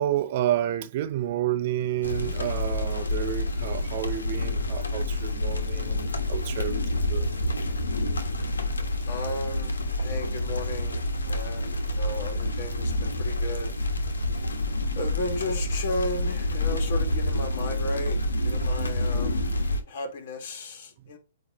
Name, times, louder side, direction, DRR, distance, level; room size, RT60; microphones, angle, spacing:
voice 1, 0.0-6.0 6.3-6.8 7.1-7.3, right 12 dB, 50° right, 0.7 m, -29 dB
sound 1, 2.0-19.8, left 1 dB, 90° left, 1.4 m, -28 dB
voice 2, 9.1-13.7 15.0-18.2 18.4-19.5 19.9-21.2, left 2 dB, 55° left, 2.4 m, -34 dB
8.6 x 3.1 x 4.1 m
hypercardioid pair, 130°, 0 cm